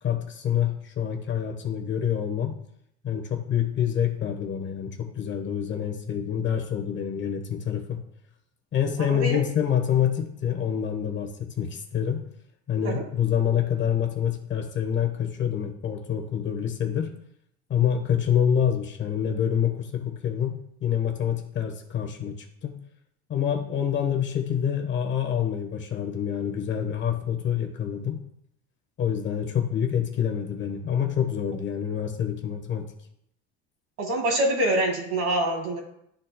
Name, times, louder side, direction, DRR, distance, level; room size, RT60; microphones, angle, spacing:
voice 1, 0.0-2.6 3.0-8.0 8.7-12.3 12.7-17.1 17.7-22.8 23.3-28.2 29.0-32.9, left 8 dB, 35° left, 3 dB, 1.1 m, -27 dB
voice 2, 9.1-9.4 12.8-13.0 34.0-35.8, right 1 dB, 55° right, 2 dB, 2.1 m, -25 dB
12.0 x 4.3 x 2.2 m, 0.73 s
cardioid pair, 130°, 31 cm